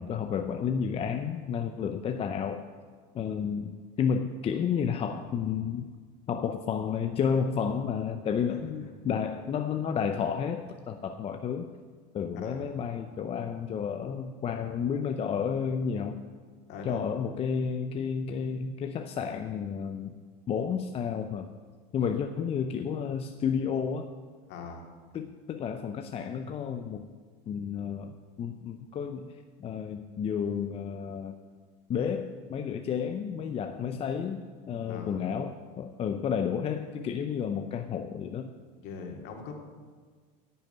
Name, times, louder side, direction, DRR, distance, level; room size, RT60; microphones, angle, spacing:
voice 1, 0.0-2.6 3.1-5.9 6.3-11.7 12.1-16.2 16.8-20.2 20.5-21.5 21.9-24.1 25.1-27.1 27.5-31.3 31.9-38.5, left 7 dB, 30° left, 7 dB, 0.6 m, -31 dB
voice 2, 8.5-8.9 12.3-12.7 16.7-17.1 24.5-24.9 34.9-35.3 38.8-39.5, left 4 dB, 55° left, 2 dB, 2.4 m, -42 dB
10.5 x 7.0 x 8.8 m, 1.5 s
supercardioid pair, 120°, 21 cm